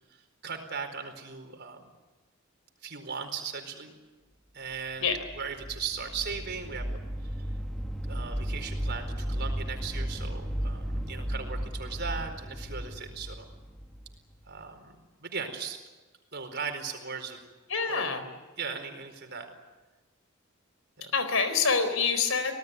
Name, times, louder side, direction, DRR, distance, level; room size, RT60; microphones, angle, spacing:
voice 1, 0.4-1.8 2.8-3.9 4.5-5.1 5.4-7.0 8.0-13.5 14.5-14.9 15.2-15.8 16.3-17.4 17.9-18.1 18.6-19.5 21.0-21.1, right 5 dB, 55° right, 5 dB, 4.5 m, -38 dB
sound 1, 5.1-14.7, equal, ahead, 1.5 m, -35 dB
voice 2, 17.7-18.3 21.0-22.5, left 5 dB, 80° left, 10 dB, 4.1 m, -26 dB
26.5 x 18.5 x 9.5 m, 1.2 s
head